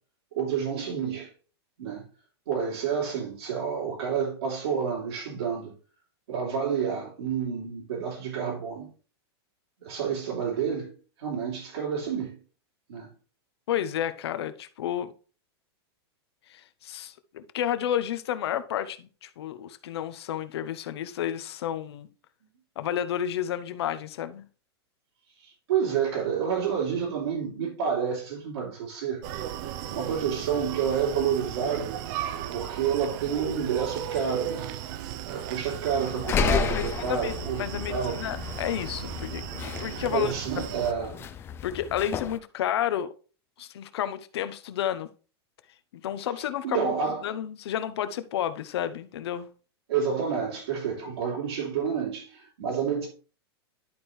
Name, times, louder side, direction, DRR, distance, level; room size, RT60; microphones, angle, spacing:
voice 1, 0.3-1.3 1.8-2.0 2.5-5.7 6.3-8.9 9.8-10.9 11.2-12.3 12.9-13.1 25.4-29.2 29.9-32.0 32.5-34.7 35.3-37.6 37.9-38.2 40.0-41.2 46.6-47.2 49.9-53.1, right 7 dB, 80° right, 3.2 m, -29 dB
voice 2, 13.7-15.1 16.5-22.1 22.8-24.5 36.7-40.7 41.6-43.1 43.6-45.1 45.9-46.9 47.2-49.5, left 10 dB, 75° left, 0.8 m, -31 dB
Screaming, 29.2-40.9, right 11 dB, 50° right, 0.6 m, -36 dB
sound 1, 35.9-42.4, left 7 dB, 20° left, 0.4 m, -32 dB
11.0 x 4.4 x 3.2 m
supercardioid pair, 145°, 14 cm